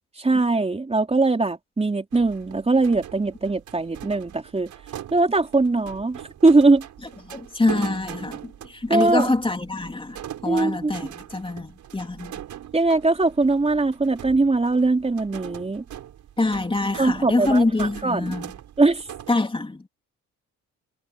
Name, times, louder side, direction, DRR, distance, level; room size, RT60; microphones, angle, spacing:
voice 1, 0.2-4.7 5.1-6.8 8.9-9.3 10.5-11.0 12.7-15.8 17.0-18.4 18.8-19.1, right 3 dB, 20° right, 3.7 m, -21 dB
sound 1, 2.1-19.3, right 11 dB, 70° right, 5.8 m, -41 dB
voice 2, 7.3-10.2 10.4-12.3 16.4-18.5 19.3-19.9, left 2 dB, 15° left, 3.5 m, -25 dB
cardioid pair, 90°, 30 cm